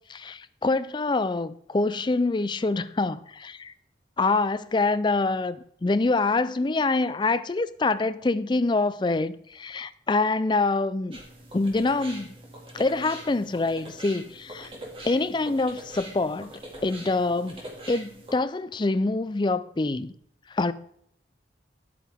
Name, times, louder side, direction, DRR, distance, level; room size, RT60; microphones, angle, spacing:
voice 1, 0.1-3.7 4.2-11.2 11.5-12.3 12.7-14.7 15.0-17.6 17.9-20.1 20.5-20.7, left 3 dB, 25° left, 0.4 m, -25 dB
sound 1, 11.1-18.4, right 1 dB, 30° right, 2.2 m, -43 dB
10.5 x 8.4 x 3.5 m
head